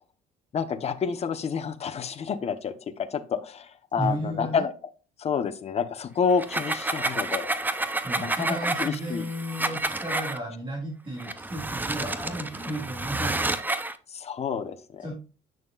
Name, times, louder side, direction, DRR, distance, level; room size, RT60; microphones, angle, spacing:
voice 1, 0.5-4.7 5.2-7.5 8.2-9.2 14.1-15.1, left 6 dB, 40° left, 7 dB, 1.0 m, -29 dB
voice 2, 4.0-4.6 8.0-13.4 15.0-15.2, right 1 dB, 30° right, -1 dB, 2.3 m, -33 dB
sound 1, 6.3-10.4 11.2-14.0, right 2 dB, 10° right, 0.7 m, -30 dB
9.0 x 6.2 x 2.4 m, 0.35 s
cardioid pair, 110°, 17 cm